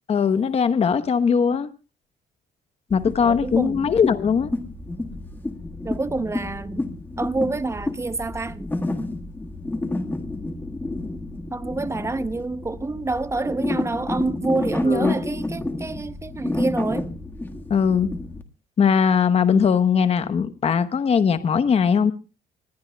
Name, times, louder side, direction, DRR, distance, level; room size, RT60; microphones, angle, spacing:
voice 1, 0.1-1.7 2.9-4.5 14.8-15.2 17.7-18.1 18.8-22.1, left 6 dB, 35° left, 1.0 m, -20 dB
sound 1, 2.9-18.4, left 2 dB, 10° left, 1.6 m, -30 dB
voice 2, 3.2-3.9 5.8-6.8 7.2-8.7 11.5-17.1, right 3 dB, 15° right, 0.7 m, -27 dB
25.5 x 20.5 x 2.3 m
cardioid pair, 110°, 17 cm